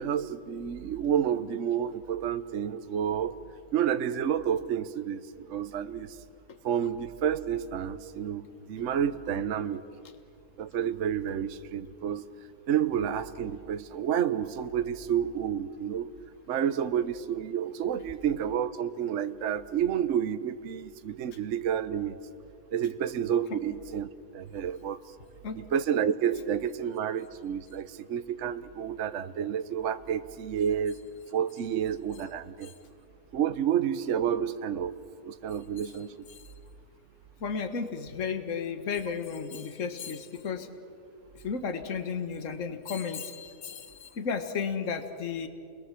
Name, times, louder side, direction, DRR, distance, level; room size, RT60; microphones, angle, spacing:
voice 1, 0.0-3.3 3.7-6.2 6.6-9.8 10.6-12.2 12.7-16.1 16.5-22.2 22.7-25.0 25.6-31.0 31.3-32.7 33.3-35.0 35.2-36.3, right 9 dB, 55° right, 10 dB, 1.0 m, -30 dB
voice 2, 37.4-40.7 41.4-45.5, left 6 dB, 50° left, 8 dB, 1.8 m, -33 dB
29.5 x 21.5 x 7.5 m, 2.4 s
omnidirectional pair, 1.8 m